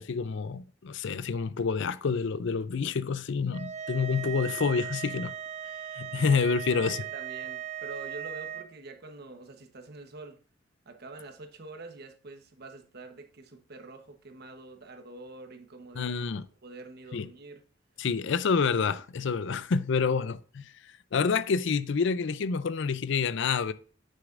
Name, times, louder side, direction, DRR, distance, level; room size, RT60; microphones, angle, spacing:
voice 1, 0.0-5.3 6.0-7.0 16.0-16.4 17.1-17.3 18.0-20.7 21.1-23.7, left 5 dB, 65° left, 0.5 m, -28 dB
sound 1, 3.5-8.7, right 10 dB, 35° right, 0.6 m, -38 dB
voice 2, 6.5-10.4 10.8-17.6, right 2 dB, 55° right, 1.1 m, -46 dB
9.2 x 6.8 x 2.5 m
head